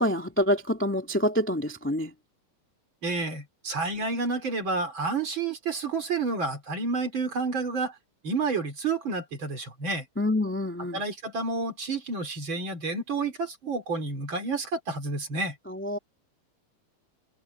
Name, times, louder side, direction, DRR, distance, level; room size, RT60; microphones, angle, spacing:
voice 1, 0.0-2.1 10.2-11.0 15.7-16.0, left 1 dB, 5° left, 1.5 m, -26 dB
voice 2, 3.0-8.0 8.2-10.1 10.9-15.6, right 3 dB, 40° right, 3.6 m, -30 dB
omnidirectional pair, 3.6 m